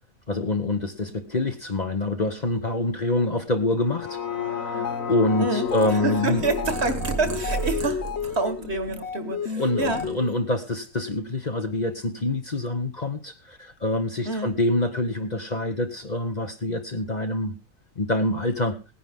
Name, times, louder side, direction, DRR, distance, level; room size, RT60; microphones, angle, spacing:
voice 1, 0.3-4.2 4.6-6.4 9.6-17.5 18.0-18.8, left 2 dB, 35° left, 6 dB, 1.2 m, -26 dB
sound 1, 3.8-9.9 10.4-10.5, left 7 dB, 85° left, 2.1 m, -34 dB
sound 2, 4.7-10.5, left 7 dB, 55° left, 1.1 m, -33 dB
voice 2, 5.4-10.0 14.3-14.5, right 3 dB, 55° right, 10 dB, 1.8 m, -28 dB
Purr, 5.7-9.2 9.6-10.7, right 4 dB, 80° right, 1.7 m, -34 dB
18.5 x 10.5 x 3.6 m, 0.28 s
omnidirectional pair, 1.4 m